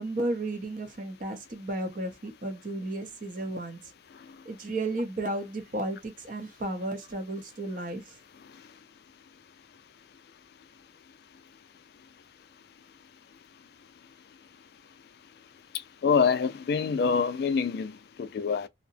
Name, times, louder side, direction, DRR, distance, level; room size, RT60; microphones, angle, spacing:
voice 1, 0.0-3.8 4.4-8.2, right 2 dB, 45° right, 0.6 m, -33 dB
voice 2, 16.0-18.7, left 5 dB, 55° left, 0.3 m, -26 dB
2.7 x 2.0 x 2.6 m
head